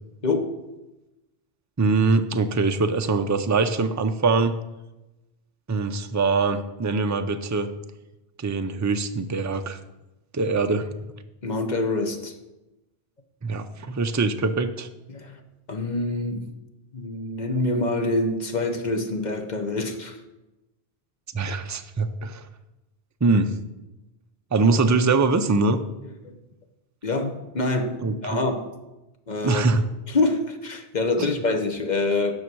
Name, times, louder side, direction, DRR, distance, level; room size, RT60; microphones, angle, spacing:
voice 1, 0.2-0.5 11.4-12.4 15.1-15.4 15.7-16.5 16.9-20.2 26.0-26.4 27.0-28.7 29.3-29.7 30.1-32.3, left 2 dB, 45° left, 6 dB, 1.0 m, -26 dB
voice 2, 1.8-4.5 5.7-7.7 8.4-9.8 10.3-10.9 13.4-14.9 21.3-22.5 23.2-23.5 24.5-25.8 28.0-28.4 29.4-29.8 31.2-31.3, right 3 dB, 25° right, 8 dB, 0.3 m, -23 dB
9.6 x 6.3 x 6.1 m, 1.0 s
omnidirectional pair, 1.1 m